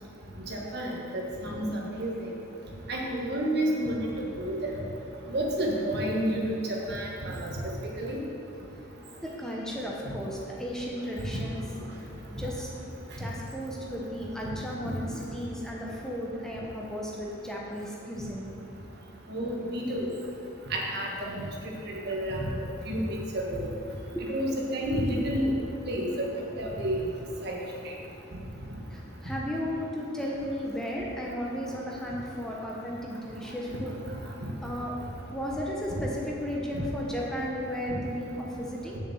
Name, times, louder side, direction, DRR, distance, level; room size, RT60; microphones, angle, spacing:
voice 1, 0.5-2.1 2.9-4.7 5.3-6.4 6.7-7.7 8.0-8.2 11.3-11.4 14.8-14.9 19.3-20.1 20.7-21.1 21.3-21.5 22.1-23.7 24.3-25.5 25.8-26.3 26.6-27.0 27.4-27.6 36.7-36.8, right 1 dB, 55° right, -2 dB, 1.6 m, -30 dB
voice 2, 9.2-11.6 11.9-12.7 13.2-18.5 24.1-24.2 28.9-33.9 34.6-34.9 35.3-39.0, equal, 5° left, -4 dB, 1.0 m, -35 dB
7.2 x 6.7 x 7.7 m, 2.8 s
head